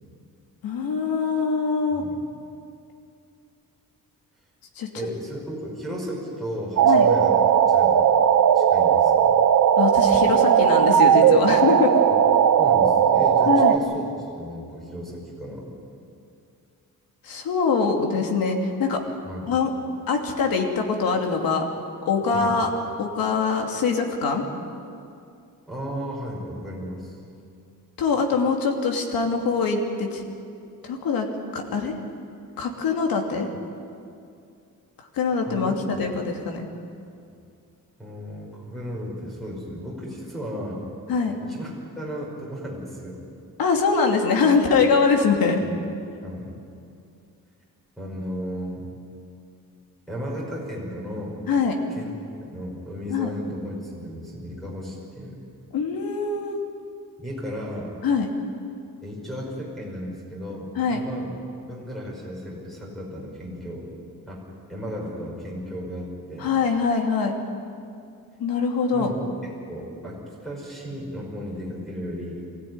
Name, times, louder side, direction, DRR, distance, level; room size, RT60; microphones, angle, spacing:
voice 1, 0.6-2.0 4.8-4.9 6.8-7.1 9.8-11.9 13.5-13.7 17.2-19.0 19.5-19.7 20.1-21.6 22.0-22.7 23.0-24.4 28.0-30.2 30.8-31.3 31.5-32.0 32.6-33.5 35.1-36.7 41.1-41.4 43.6-45.6 51.5-51.8 53.1-53.3 55.7-56.6 58.0-58.3 60.8-61.0 66.4-67.3 68.4-69.1, left 5 dB, 90° left, 2 dB, 2.8 m, -23 dB
voice 2, 1.9-2.2 4.9-7.4 7.7-8.1 8.5-9.3 12.1-12.2 12.6-15.7 19.2-19.5 22.3-22.6 25.7-27.2 35.5-36.1 38.0-40.9 41.3-41.7 42.0-43.2 45.6-45.7 46.2-46.5 48.0-48.8 50.1-51.5 52.0-52.1 52.4-55.4 57.2-58.0 59.0-61.4 61.7-63.9 64.3-64.4 64.7-66.5 68.9-69.2 69.4-72.4, equal, ahead, -5 dB, 5.5 m, -35 dB
sound 1, 6.8-13.8, right 8 dB, 55° right, 1.1 m, -17 dB
23.5 x 16.0 x 9.7 m, 2.4 s
wide cardioid pair, 175°, 34 cm